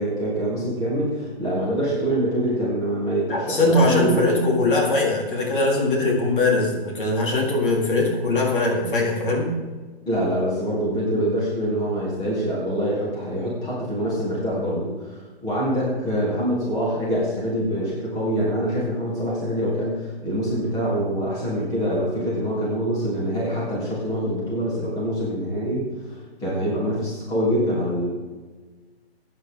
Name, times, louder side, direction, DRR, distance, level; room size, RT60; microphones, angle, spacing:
voice 1, 0.0-4.1 10.0-26.1 26.4-28.1, equal, 10° left, -7 dB, 3.4 m, -25 dB
voice 2, 3.3-9.5, left 2 dB, 55° left, -2 dB, 4.2 m, -21 dB
16.0 x 9.7 x 3.8 m, 1.4 s
hypercardioid pair, 150°, 32 cm